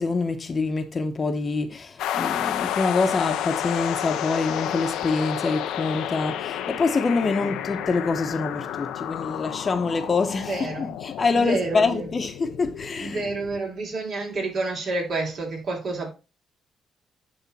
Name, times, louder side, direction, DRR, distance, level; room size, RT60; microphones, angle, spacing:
voice 1, 0.0-13.3, left 4 dB, 35° left, 1.0 m, -25 dB
sound 1, 2.0-13.6, left 11 dB, 90° left, 0.7 m, -31 dB
voice 2, 7.2-7.6 10.4-10.9 11.3-12.1 13.0-16.1, right 3 dB, 55° right, 3.7 m, -29 dB
10.5 x 3.6 x 4.2 m
cardioid pair, 90°, 0 cm